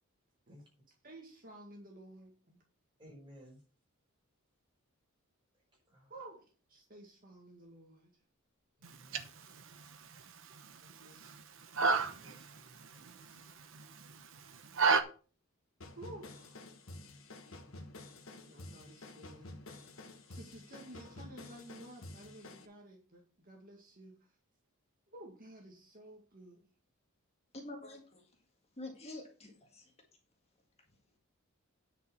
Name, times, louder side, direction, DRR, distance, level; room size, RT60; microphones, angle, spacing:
voice 1, 1.0-2.6 6.1-8.1 10.8-11.5 15.9-16.6 18.5-19.6 20.3-24.4 25.1-26.7, right 1 dB, 40° right, 0 dB, 2.0 m, -53 dB
voice 2, 3.0-3.6 5.9-6.1 8.8-9.4 11.9-13.6, equal, 20° right, -3 dB, 5.1 m, -58 dB
sound 1, 8.8-15.0, right 4 dB, 60° right, 0.9 m, -34 dB
sound 2, 15.8-22.7, left 2 dB, 65° left, 1.5 m, -50 dB
voice 3, 27.5-28.3 28.8-29.9 30.9-31.0, left 2 dB, 30° left, 2 dB, 1.8 m, -47 dB
9.9 x 5.3 x 5.9 m, 0.38 s
head